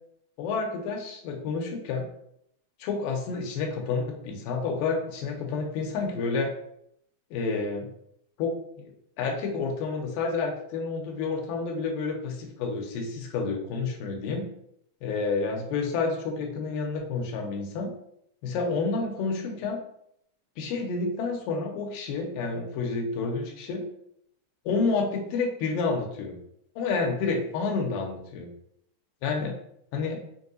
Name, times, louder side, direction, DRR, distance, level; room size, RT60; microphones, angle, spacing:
voice 1, 0.4-2.1 2.8-6.5 7.3-7.9 8.4-8.6 9.2-14.5 15.0-17.9 18.4-19.8 20.6-23.9 24.7-26.4 26.8-28.5 29.2-29.5 29.9-30.2, left 4 dB, 90° left, 1 dB, 2.4 m, -29 dB
6.0 x 2.7 x 2.6 m, 0.73 s
omnidirectional pair, 3.9 m